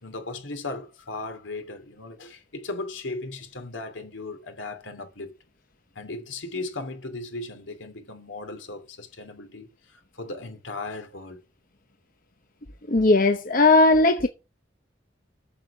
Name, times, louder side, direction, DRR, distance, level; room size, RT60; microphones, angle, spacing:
voice 1, 0.0-5.3 5.9-11.4, left 2 dB, 80° left, 2.8 m, -37 dB
voice 2, 12.9-14.3, left 2 dB, 45° left, 0.9 m, -18 dB
8.7 x 7.1 x 7.1 m
head